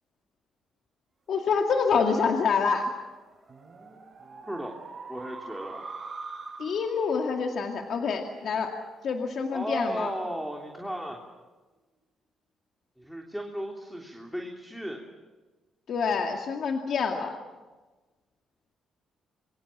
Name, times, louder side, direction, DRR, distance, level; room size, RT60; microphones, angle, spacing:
voice 1, 1.3-2.9 6.6-8.7 9.0-10.1 15.9-17.4, left 5 dB, 60° left, 3 dB, 2.2 m, -27 dB
sound 1, 1.3-10.2, right 3 dB, 35° right, 7.5 m, -45 dB
voice 2, 5.1-5.9 9.5-11.2 13.0-15.0, equal, ahead, 0 dB, 3.2 m, -35 dB
27.0 x 23.5 x 7.5 m, 1.3 s
cardioid pair, 90°, 0 cm